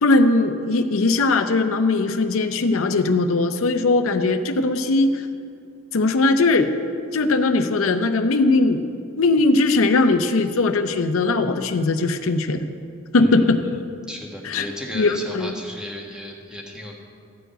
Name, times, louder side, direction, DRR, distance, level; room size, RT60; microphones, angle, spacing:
voice 1, 0.0-5.2 5.9-6.7 7.1-8.8 9.2-12.7 13.1-13.8 14.4-14.7 14.9-15.5, left 3 dB, 75° left, 7 dB, 0.6 m, -19 dB
voice 2, 13.2-13.6 14.1-17.0, left 1 dB, 5° right, -1 dB, 1.3 m, -35 dB
13.5 x 4.7 x 8.9 m, 2.4 s
head